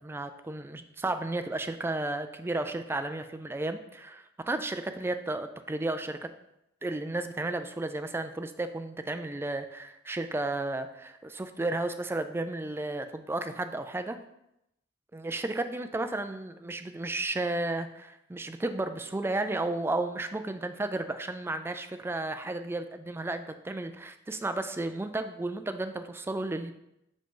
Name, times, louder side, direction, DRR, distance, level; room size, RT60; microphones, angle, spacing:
voice 1, 0.0-6.3 6.8-14.2 15.1-26.7, right 2 dB, 10° right, 8 dB, 0.3 m, -33 dB
5.2 x 5.1 x 3.7 m, 0.83 s
head